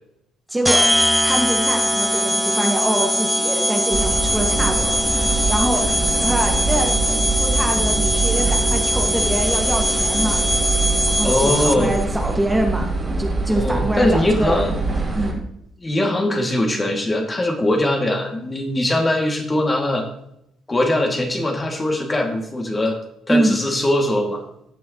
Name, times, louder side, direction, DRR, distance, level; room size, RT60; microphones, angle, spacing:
voice 1, 0.5-0.8 1.2-4.9 5.5-5.8 6.2-10.4 11.1-12.9 13.2-14.7 15.1-15.4 23.3-23.6, right 1 dB, 10° right, 1 dB, 1.8 m, -24 dB
sound 1, 0.6-12.0, equal, 5° left, 0.5 m, -21 dB
sound 2, 3.9-15.3, right 3 dB, 30° right, 3.0 m, -24 dB
voice 2, 11.2-11.9 13.5-14.7 15.8-20.1 20.7-23.0 23.3-24.4, left 1 dB, 25° left, 2 dB, 2.3 m, -21 dB
16.5 x 6.2 x 3.0 m, 0.78 s
hypercardioid pair, 50°, 0 cm